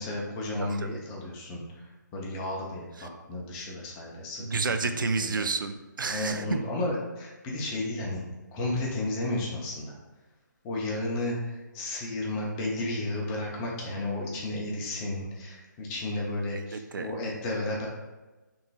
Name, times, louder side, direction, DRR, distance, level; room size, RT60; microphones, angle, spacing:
voice 1, 0.0-4.4 5.2-5.5 6.1-8.2 8.5-9.9 10.6-17.9, left 2 dB, 10° left, -2 dB, 0.4 m, -33 dB
voice 2, 0.6-1.0 3.0-3.1 4.4-6.7 16.5-17.1, right 4 dB, 85° right, 8 dB, 0.4 m, -31 dB
5.3 x 3.1 x 2.2 m, 1.2 s
hypercardioid pair, 165°, 11 cm